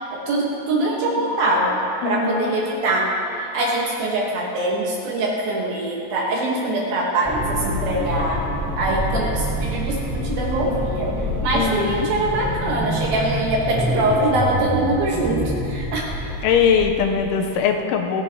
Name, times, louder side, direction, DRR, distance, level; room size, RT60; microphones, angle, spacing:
voice 1, 0.0-3.1 3.4-8.4 8.8-11.1 11.4-16.1, right 2 dB, 65° right, -3 dB, 2.5 m, -23 dB
voice 2, 2.0-2.5 11.5-12.1 16.4-18.2, left 7 dB, 85° left, 4 dB, 3.1 m, -21 dB
sound 1, 7.2-17.5, equal, 5° right, 2.5 m, -27 dB
27.0 x 10.5 x 2.9 m, 2.9 s
omnidirectional pair, 5.5 m